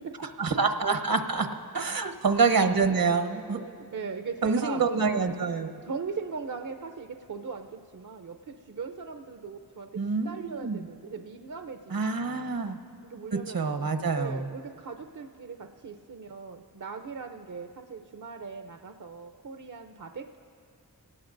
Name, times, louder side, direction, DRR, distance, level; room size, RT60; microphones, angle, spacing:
voice 1, 0.4-1.5 1.7-3.6 4.4-5.8 10.0-10.8 11.9-12.8 13.3-14.5, right 4 dB, 75° right, 6 dB, 1.1 m, -26 dB
voice 2, 3.6-4.8 5.9-9.9 10.2-12.6 13.0-13.6 14.2-20.4, right 5 dB, 60° right, 5 dB, 0.6 m, -39 dB
26.5 x 18.5 x 2.6 m, 2.4 s
wide cardioid pair, 95°, 35 cm